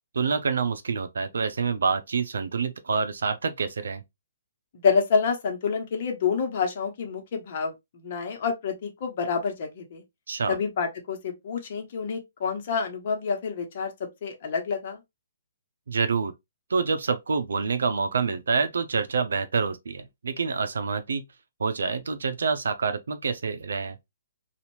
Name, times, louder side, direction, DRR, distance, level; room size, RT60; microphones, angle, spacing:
voice 1, 0.1-4.0 10.3-10.6 15.9-16.3 16.7-21.2 21.6-24.0, right 5 dB, 80° right, 0.5 m, -27 dB
voice 2, 4.8-10.0 10.5-13.9 14.2-15.0, left 5 dB, 50° left, 1.0 m, -28 dB
2.7 x 2.4 x 2.9 m
hypercardioid pair, 145°, 0 cm